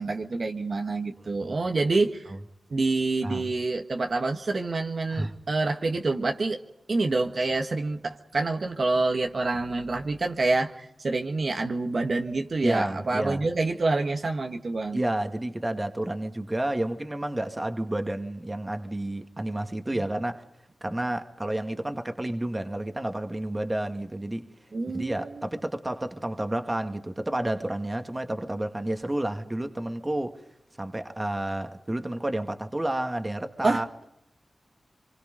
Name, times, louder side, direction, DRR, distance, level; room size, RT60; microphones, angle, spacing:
voice 1, 0.0-2.3 2.7-6.6 6.9-15.0 24.7-25.4 33.6-34.1, right 3 dB, 60° right, 1.7 m, -27 dB
voice 2, 12.6-13.4 14.9-20.4 20.8-24.5 24.9-30.4 30.8-33.9, right 1 dB, 25° right, 2.0 m, -30 dB
27.5 x 24.0 x 5.2 m
cardioid pair, 45°, 0 cm